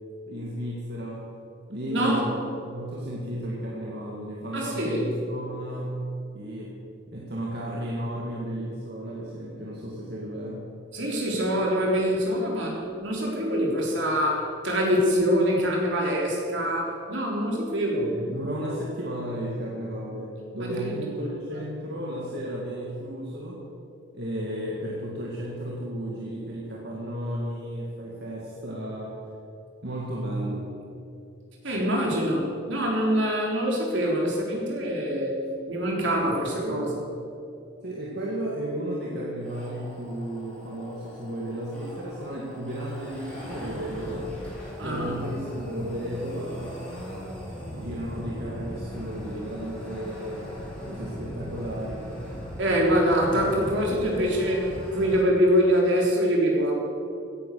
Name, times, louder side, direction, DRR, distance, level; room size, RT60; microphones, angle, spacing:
voice 1, 0.3-1.3 1.7-6.1 6.3-10.7 17.7-23.6 24.1-29.2 29.8-30.7 36.4-37.0 37.8-44.4 44.8-46.9 47.7-50.6 50.9-52.2 53.3-54.0, right 1 dB, 55° right, -4 dB, 2.1 m, -34 dB
voice 2, 1.9-2.3 4.5-5.1 10.9-18.1 20.6-20.9 31.6-35.4 35.7-37.0 44.8-45.2 52.6-56.7, equal, 70° right, -2 dB, 3.9 m, -24 dB
sound 1, 39.4-55.2, equal, 5° left, 4.4 m, -39 dB
16.5 x 10.5 x 6.9 m, 2.5 s
head